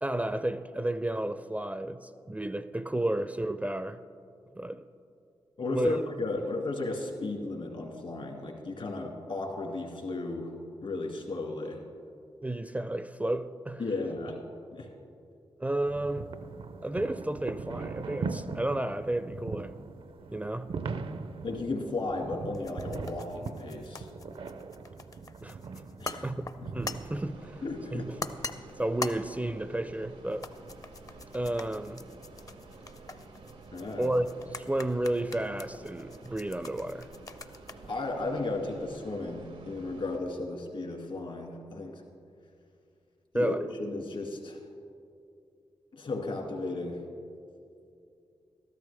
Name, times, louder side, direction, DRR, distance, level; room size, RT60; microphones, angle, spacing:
voice 1, 0.0-4.0 4.6-4.8 5.7-6.0 12.4-13.9 15.6-16.3 16.8-19.7 20.3-20.7 25.4-27.6 27.9-28.3 28.8-30.5 31.3-32.1 34.0-34.3 34.5-37.1 43.3-43.6, right 1 dB, 15° right, 0.4 m, -32 dB
voice 2, 5.6-10.5 10.8-11.8 13.8-14.4 14.7-14.9 17.8-17.9 21.4-24.1 26.0-26.3 26.6-26.7 27.6-28.1 33.7-34.2 37.9-42.0 43.3-43.5 43.8-44.6 45.9-47.0, left 2 dB, 65° left, 2.0 m, -34 dB
sound 1, 15.9-27.2, right 4 dB, 65° right, 0.5 m, -40 dB
sound 2, 22.5-39.0, left 3 dB, 35° left, 0.6 m, -44 dB
sound 3, 26.8-40.2, right 3 dB, 85° right, 0.9 m, -50 dB
13.0 x 12.0 x 3.3 m
cardioid pair, 45°, 10 cm